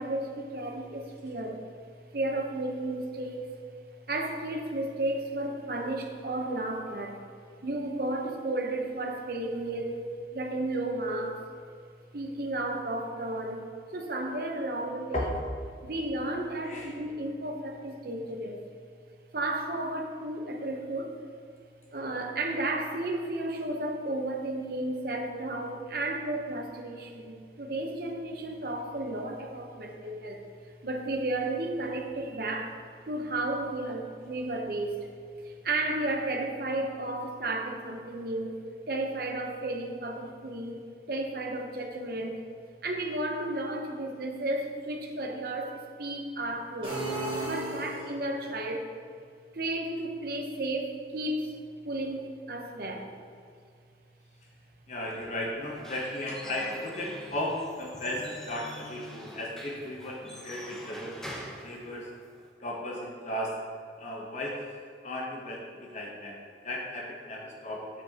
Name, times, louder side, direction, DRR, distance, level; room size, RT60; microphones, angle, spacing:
voice 1, 0.0-1.6 2.1-3.5 4.1-7.2 7.6-10.1 10.3-11.5 12.1-13.6 13.9-15.3 15.8-18.6 19.3-21.1 21.9-30.4 30.8-35.1 35.4-40.8 41.1-42.4 42.8-47.0 47.4-48.9 49.5-51.5 51.8-53.1, right 2 dB, 55° right, 2 dB, 0.8 m, -33 dB
voice 2, 16.6-17.0 54.9-61.2 61.6-62.1 62.6-63.6 64.0-64.6 65.0-67.8, left 1 dB, 40° left, -2 dB, 0.9 m, -35 dB
sound 1, 46.8-48.4, right 1 dB, 30° right, 1.7 m, -34 dB
Squeak / Wood, 55.6-62.5, equal, 5° left, 0.7 m, -45 dB
7.3 x 7.0 x 2.8 m, 2.2 s
head